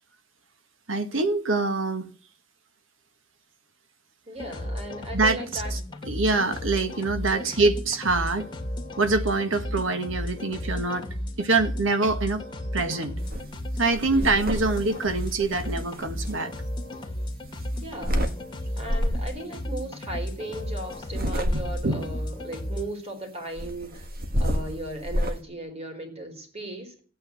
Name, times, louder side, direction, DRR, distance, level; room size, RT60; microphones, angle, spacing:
voice 1, 0.9-2.1 5.1-5.8 6.1-8.5 9.0-11.1 11.4-12.4 12.7-13.2 13.8-16.5 21.2-22.1, right 3 dB, 70° right, 1.5 m, -25 dB
voice 2, 4.3-5.7 6.0-6.1 7.3-7.5 14.1-14.4 17.8-18.2 18.8-24.1 24.4-27.0, right 1 dB, 30° right, 4.3 m, -37 dB
sound 1, 4.4-22.8, equal, 25° left, 2.3 m, -34 dB
sound 2, 13.2-13.5 13.8-16.3 17.4-18.3 18.8-19.3 20.9-22.0 23.5-25.4, equal, 50° right, 1.6 m, -29 dB
15.5 x 9.1 x 8.2 m
head